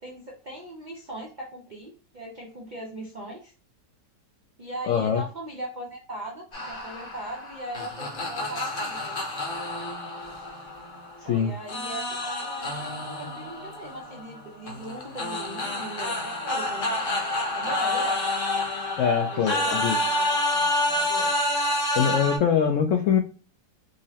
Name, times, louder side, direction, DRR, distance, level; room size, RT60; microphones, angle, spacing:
voice 1, 0.0-3.5 4.6-9.2 11.2-16.9 17.5-18.2 19.3-21.3, right 1 dB, 70° right, -1 dB, 0.4 m, -39 dB
voice 2, 4.9-5.2 11.3-11.5 19.0-20.0 22.0-23.2, left 7 dB, 90° left, 5 dB, 0.6 m, -23 dB
sound 1, 6.5-11.2 11.7-22.4, left 1 dB, 40° left, 0.8 m, -28 dB
5.4 x 2.0 x 2.8 m, 0.37 s
omnidirectional pair, 1.9 m